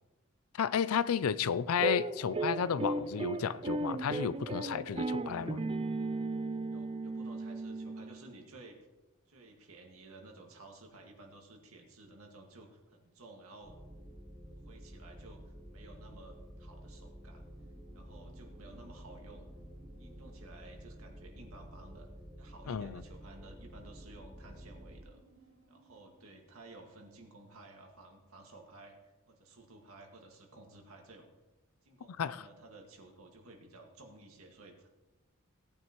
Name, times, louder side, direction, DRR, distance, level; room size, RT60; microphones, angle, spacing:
voice 1, 0.5-5.6 22.7-23.0 32.2-32.4, left 7 dB, 85° left, 0.4 m, -32 dB
sound 1, 1.8-8.3, right 2 dB, 25° right, 0.4 m, -36 dB
voice 2, 6.6-8.8 9.3-13.8 14.6-17.5 17.9-19.5 20.0-22.1 22.4-25.2 25.7-31.3 31.8-34.9, right 2 dB, 85° right, 2.0 m, -54 dB
sound 2, 13.6-25.0, equal, 5° right, 1.1 m, -50 dB
sound 3, 13.9-28.0, right 2 dB, 60° right, 3.6 m, -67 dB
17.5 x 9.1 x 3.1 m
head